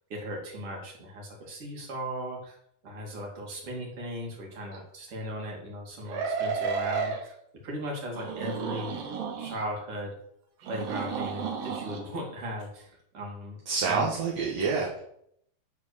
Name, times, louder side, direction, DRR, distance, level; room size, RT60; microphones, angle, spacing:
voice 1, 0.1-2.6 2.8-7.3 7.6-8.9 9.4-10.1 10.6-13.6 13.8-14.1, equal, 40° right, -1 dB, 2.9 m, -37 dB
sound 1, 4.7-4.8 6.1-7.2 8.1-9.6 10.6-12.0, right 5 dB, 75° right, 3.2 m, -32 dB
voice 2, 13.7-15.0, right 5 dB, 55° right, -4 dB, 2.2 m, -27 dB
10.5 x 4.5 x 6.8 m, 0.72 s
omnidirectional pair, 4.3 m